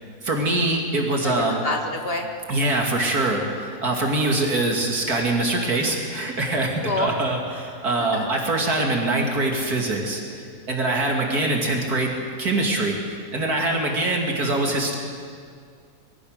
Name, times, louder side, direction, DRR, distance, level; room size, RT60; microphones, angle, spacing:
voice 1, 0.2-1.6 2.5-14.9, right 2 dB, 70° right, 0 dB, 2.9 m, -24 dB
voice 2, 1.2-2.3 6.8-7.2 8.0-8.3, left 2 dB, 35° left, 2 dB, 2.5 m, -27 dB
25.0 x 21.5 x 6.5 m, 2.2 s
omnidirectional pair, 1.7 m